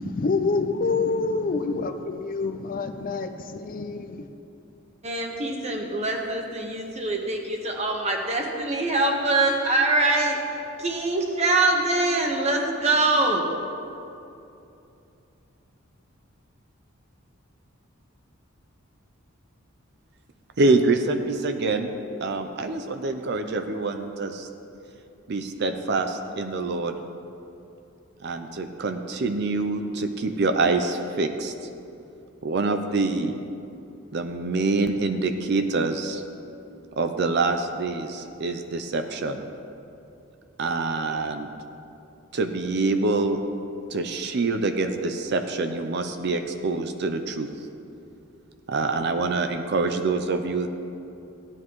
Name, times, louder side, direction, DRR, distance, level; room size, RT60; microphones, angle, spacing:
voice 1, 0.0-4.3, left 3 dB, 40° left, 8 dB, 0.5 m, -27 dB
voice 2, 5.0-10.4 10.8-13.5, right 2 dB, 30° right, 1 dB, 1.2 m, -24 dB
voice 3, 20.6-21.9 22.2-24.5 25.3-27.0 28.2-31.5 32.4-33.4 34.1-36.2 37.0-39.5 40.6-41.5 42.3-43.4 43.9-47.5 48.7-50.7, right 3 dB, 55° right, 7 dB, 0.5 m, -25 dB
15.5 x 9.8 x 3.1 m, 2.7 s
head